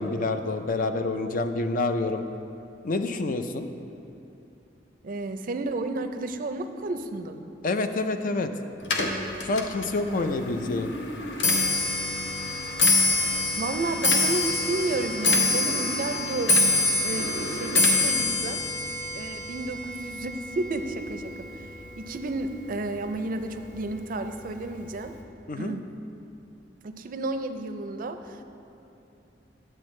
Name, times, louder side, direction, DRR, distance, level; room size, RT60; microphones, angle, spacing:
voice 1, 0.0-2.2 2.8-3.7 7.6-8.5 9.4-10.9 25.5-25.8, left 3 dB, 50° left, 8 dB, 0.4 m, -27 dB
voice 2, 5.0-7.5 10.0-10.3 13.6-16.6 17.0-18.6 19.1-21.7 22.0-25.1 25.6-25.9 26.8-28.4, right 2 dB, 50° right, 8 dB, 0.4 m, -32 dB
Clock, 8.8-22.2 22.5-23.0 23.8-23.9 24.2-24.6 24.8-24.9, left 2 dB, 75° left, 0.8 m, -26 dB
10.5 x 7.7 x 3.2 m, 2.9 s
head